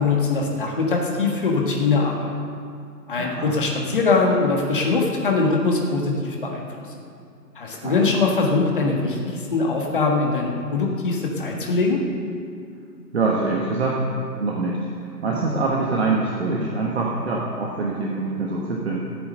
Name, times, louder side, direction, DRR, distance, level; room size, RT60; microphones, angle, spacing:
voice 1, 0.0-2.3 3.1-6.6 7.5-12.0, left 3 dB, 30° left, 0 dB, 1.6 m, -22 dB
voice 2, 3.2-3.6 7.7-8.1 13.1-19.1, right 3 dB, 40° right, -2 dB, 1.3 m, -25 dB
13.5 x 8.9 x 6.6 m, 2.3 s
figure-of-eight pair, 160°, 49 cm